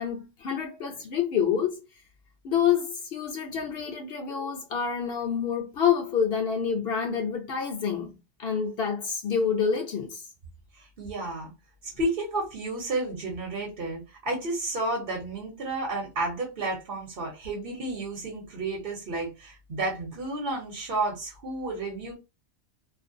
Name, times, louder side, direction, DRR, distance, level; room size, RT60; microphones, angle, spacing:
voice 1, 0.0-1.8 2.4-8.1 8.4-10.3, left 7 dB, 65° left, 0.8 m, -27 dB
voice 2, 10.7-11.5 12.0-22.1, right 2 dB, 55° right, 0.9 m, -31 dB
2.4 x 2.2 x 2.6 m
omnidirectional pair, 1.2 m